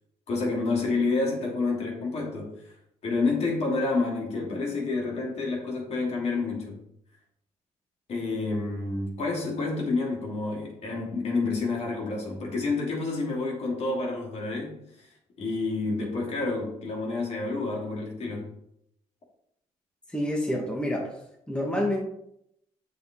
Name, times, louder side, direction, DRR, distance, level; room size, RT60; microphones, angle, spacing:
voice 1, 0.3-2.7 3.0-6.8 8.1-15.1 15.4-18.5, left 3 dB, 55° left, 3.0 m, -29 dB
voice 2, 20.1-21.1 21.5-22.0, left 1 dB, 10° left, 1.8 m, -28 dB
7.6 x 6.4 x 3.8 m
cardioid pair, 90°, 13 cm